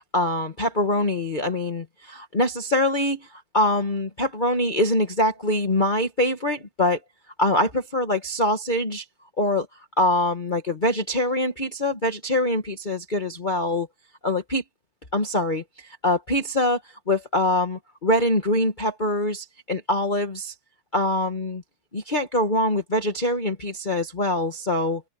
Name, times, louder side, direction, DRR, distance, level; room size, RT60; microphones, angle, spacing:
voice 1, 0.1-7.0 7.4-9.0 9.4-9.7 10.0-13.9 14.2-14.6 15.1-16.8 17.1-20.5 20.9-21.6 21.9-25.0, left 1 dB, 40° left, 0.6 m, -24 dB
open air
omnidirectional pair, 3.3 m